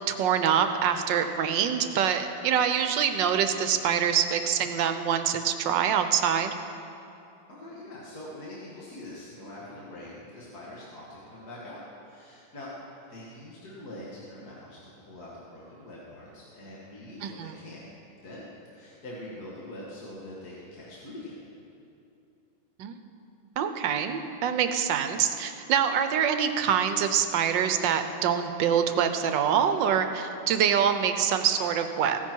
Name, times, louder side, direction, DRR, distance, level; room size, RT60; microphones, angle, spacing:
voice 1, 0.1-6.5 17.2-17.5 22.8-23.0 23.6-32.2, right 8 dB, 70° right, 8 dB, 1.3 m, -25 dB
voice 2, 7.5-12.7 13.1-17.9 18.2-18.4 18.7-21.4, left 1 dB, 50° left, -6 dB, 2.3 m, -43 dB
16.0 x 10.5 x 4.6 m, 2.8 s
omnidirectional pair, 2.2 m